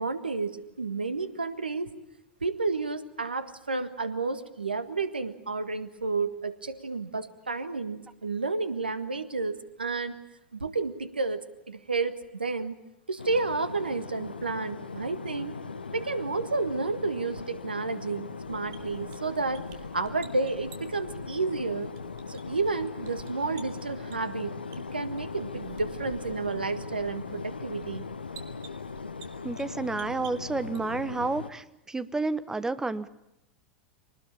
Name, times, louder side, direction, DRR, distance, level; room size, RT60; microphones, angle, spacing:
voice 1, 0.0-1.9 2.4-10.2 10.5-12.8 13.1-15.6 15.9-19.7 19.9-21.9 22.3-24.6 24.9-28.0, right 3 dB, 80° right, 12 dB, 1.6 m, -31 dB
sound 1, 13.2-31.5, left 4 dB, 80° left, 1.0 m, -39 dB
sound 2, 18.4-31.2, right 7 dB, 55° right, 3.7 m, -53 dB
voice 2, 29.4-33.1, right 3 dB, 10° right, 14 dB, 1.2 m, -30 dB
24.5 x 19.5 x 8.9 m, 0.86 s
figure-of-eight pair, 85°, 5 cm